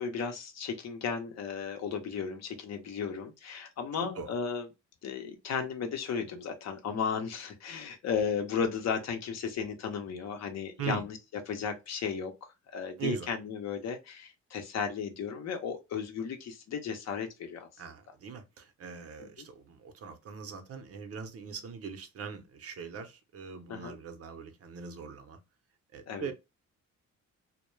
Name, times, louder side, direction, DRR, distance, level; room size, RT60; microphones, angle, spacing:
voice 1, 0.0-4.7 5.0-11.2 11.5-12.3 12.7-17.7 19.4-19.5 23.7-24.0 26.1-26.3, left 6 dB, 60° left, 0.7 m, -35 dB
voice 2, 4.0-4.3 10.8-11.0 13.0-13.3 17.8-25.4 25.9-26.3, right 6 dB, 50° right, 0.7 m, -41 dB
2.2 x 2.1 x 3.0 m
cardioid pair, 90°, 30 cm